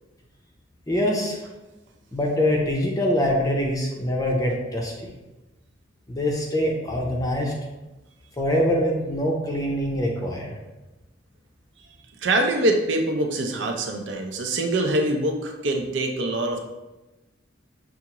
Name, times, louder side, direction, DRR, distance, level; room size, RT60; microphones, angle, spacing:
voice 1, 0.9-1.4 2.1-5.1 6.1-7.5 8.4-10.5, equal, 20° left, -1 dB, 0.5 m, -24 dB
voice 2, 12.2-16.6, right 1 dB, 75° right, 3 dB, 0.6 m, -24 dB
5.7 x 2.5 x 2.9 m, 1.1 s
head